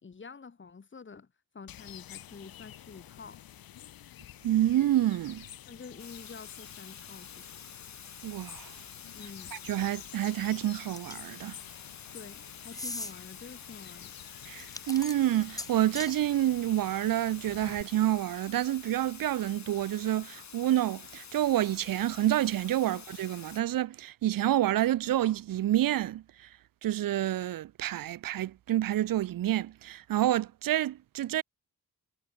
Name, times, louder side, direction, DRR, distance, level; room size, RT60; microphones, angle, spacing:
voice 1, 0.0-1.3 1.5-3.5 5.7-7.5 9.1-9.6 12.1-14.1 22.9-23.0, left 5 dB, 35° left, 1.9 m, -48 dB
sound 1, 1.7-17.8, left 12 dB, 85° left, 0.9 m, -50 dB
voice 2, 4.4-5.4 8.2-8.7 9.6-11.6 14.5-26.2 26.8-31.4, right 13 dB, 75° right, 0.6 m, -28 dB
sound 2, 6.0-23.6, left 7 dB, 55° left, 2.9 m, -48 dB
sound 3, 11.0-11.3 12.7-13.1 14.6-16.2, left 2 dB, 10° left, 1.0 m, -39 dB
wide cardioid pair, 135°, 34 cm